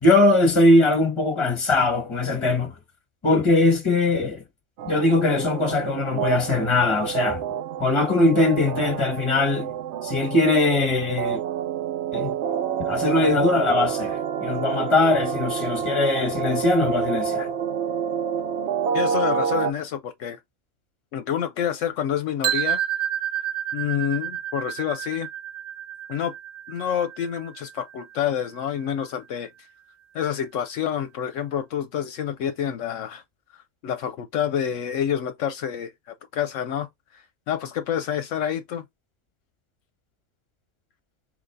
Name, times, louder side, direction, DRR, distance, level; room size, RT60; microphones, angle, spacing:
voice 1, 0.0-2.7 3.2-4.4 4.8-7.4 7.8-9.7 10.0-11.4 12.1-12.3 12.9-17.5, left 2 dB, 25° left, 1.2 m, -21 dB
sound 1, 4.8-19.7, right 7 dB, 65° right, 0.8 m, -28 dB
voice 2, 18.9-20.4 21.1-22.8 23.7-25.3 26.1-26.3 26.7-29.5 30.1-33.2 33.8-35.9 36.3-36.9 37.1-38.8, left 9 dB, 75° left, 0.9 m, -28 dB
sound 2, 22.4-28.4, right 11 dB, 90° right, 1.1 m, -30 dB
3.8 x 3.2 x 3.3 m
omnidirectional pair, 1.4 m